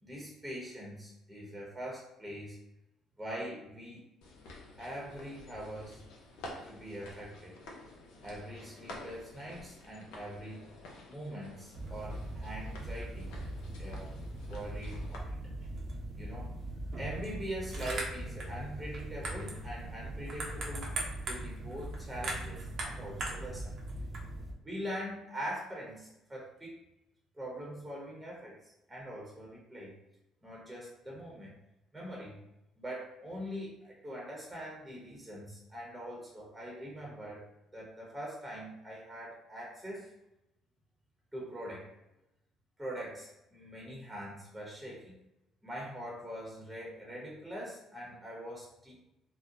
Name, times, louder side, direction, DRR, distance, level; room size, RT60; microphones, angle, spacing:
voice 1, 0.0-2.6 3.2-4.1 4.8-6.0 6.6-7.5 8.2-10.7 11.1-13.4 13.8-14.1 14.5-15.4 16.2-16.5 16.9-20.9 21.3-23.7 24.6-26.8 27.3-30.0 30.4-31.6 31.9-32.4 32.8-40.1 41.3-41.9 42.8-45.2 45.6-49.0, equal, 15° right, -4 dB, 0.9 m, -43 dB
sound 1, 4.2-15.2, left 2 dB, 70° left, 0.5 m, -50 dB
sound 2, 11.7-24.5, right 1 dB, 55° right, 0.7 m, -39 dB
2.7 x 2.0 x 2.6 m, 0.90 s
hypercardioid pair, 50°, 0 cm